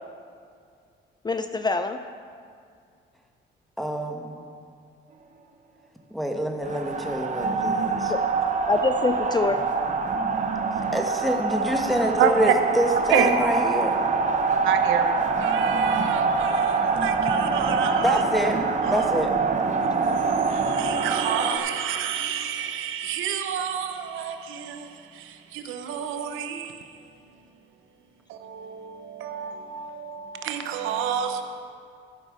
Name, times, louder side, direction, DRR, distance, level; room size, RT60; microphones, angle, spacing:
voice 1, 1.2-2.0 8.1-8.2 8.7-9.6 17.4-17.5, left 3 dB, 20° left, 0.4 m, -25 dB
voice 2, 3.8-4.4 6.1-8.1 10.9-14.0 18.0-18.6 18.9-19.3, equal, ahead, 1.3 m, -26 dB
sound 1, 6.6-21.6, right 4 dB, 35° right, 0.8 m, -25 dB
voice 3, 12.2-12.5 13.1-13.3 14.6-18.2 18.8-19.1 19.9-26.9 28.3-31.4, right 9 dB, 85° right, 0.8 m, -29 dB
12.5 x 5.3 x 6.3 m
cardioid pair, 90°, 20 cm